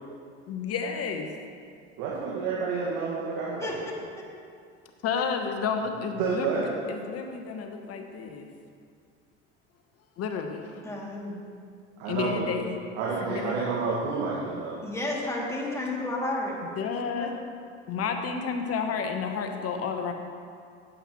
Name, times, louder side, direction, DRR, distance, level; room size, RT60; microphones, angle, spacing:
voice 1, 0.5-1.3 5.0-8.5 10.2-10.8 12.1-12.7 13.3-13.5 16.8-17.4 17.9-20.1, left 6 dB, 45° left, 5 dB, 1.2 m, -31 dB
voice 2, 2.0-3.7 6.2-6.7 12.0-12.5 12.9-14.8, right 4 dB, 60° right, -5 dB, 1.9 m, -29 dB
voice 3, 10.8-11.4 14.8-16.6 17.2-17.3, left 2 dB, 10° left, -4 dB, 2.6 m, -31 dB
16.0 x 7.6 x 3.1 m, 2.3 s
figure-of-eight pair, 65°, 35 cm